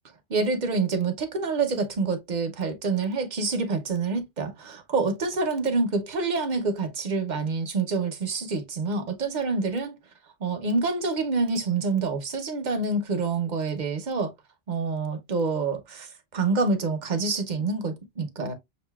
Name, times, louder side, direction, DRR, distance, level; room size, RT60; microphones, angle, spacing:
voice 1, 0.3-10.0 10.4-14.3 14.7-18.5, right 4 dB, 50° right, 0.8 m, -27 dB
5.9 x 2.5 x 2.2 m
omnidirectional pair, 1.1 m